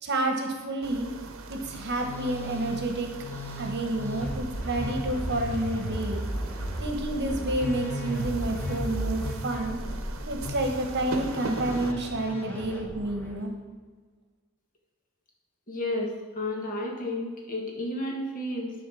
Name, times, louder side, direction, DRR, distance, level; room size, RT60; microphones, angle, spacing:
voice 1, 0.0-1.1 1.5-3.1 3.6-6.2 6.8-9.8 10.3-13.5, right 1 dB, 55° right, 3 dB, 1.1 m, -29 dB
sound 1, 0.8-11.9, right 3 dB, 75° right, 0.8 m, -40 dB
Musical instrument, 1.6-13.4, equal, 10° left, 1.1 m, -35 dB
voice 2, 15.7-16.1 16.3-18.7, left 1 dB, 40° left, 0 dB, 1.6 m, -31 dB
11.0 x 4.0 x 6.2 m, 1.5 s
head